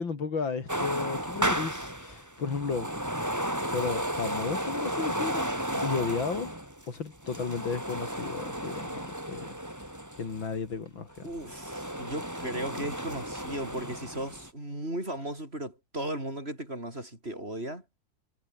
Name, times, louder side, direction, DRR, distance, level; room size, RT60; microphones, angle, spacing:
voice 1, 0.0-2.9 3.6-5.5 5.8-6.5 6.9-9.9 10.2-11.3, left 5 dB, 90° left, 3.8 m, -34 dB
sound 1, 0.7-10.5 11.1-14.5, equal, 10° right, 5.1 m, -33 dB
voice 2, 5.7-6.1 11.2-17.8, right 1 dB, 30° right, 8.4 m, -36 dB
omnidirectional pair, 2.1 m